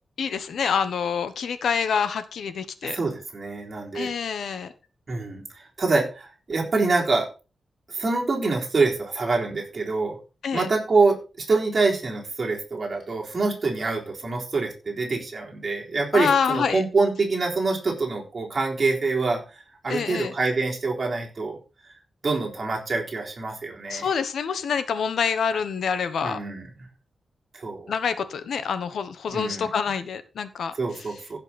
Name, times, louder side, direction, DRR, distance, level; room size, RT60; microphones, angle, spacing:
voice 1, 0.2-3.0 3.9-4.7 10.4-10.7 16.1-16.8 19.9-20.3 23.9-26.4 27.9-30.7, left 6 dB, 80° left, 12 dB, 1.1 m, -26 dB
voice 2, 2.8-4.1 5.1-7.3 7.9-10.2 10.5-21.6 22.2-24.1 26.2-26.7 27.5-27.9 29.3-29.7 30.8-31.4, right 3 dB, 35° right, -1 dB, 3.8 m, -25 dB
15.5 x 6.0 x 4.2 m, 0.31 s
wide cardioid pair, 145°, 0 cm